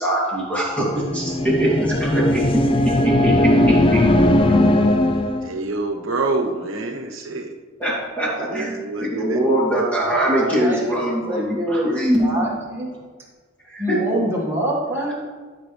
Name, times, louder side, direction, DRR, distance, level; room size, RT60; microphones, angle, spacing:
voice 1, 0.0-2.4 3.2-4.3 7.8-12.5 13.7-14.0, right 1 dB, 5° left, -6 dB, 2.7 m, -22 dB
sound 1, 0.9-5.5, left 1 dB, 25° left, 0.4 m, -18 dB
voice 2, 5.4-7.5 8.4-9.6, right 3 dB, 75° right, 3 dB, 1.1 m, -26 dB
voice 3, 10.4-10.8 11.1-11.9 12.2-12.9 13.8-15.1, right 1 dB, 15° right, -4 dB, 1.8 m, -25 dB
12.5 x 6.1 x 3.3 m, 1.5 s
head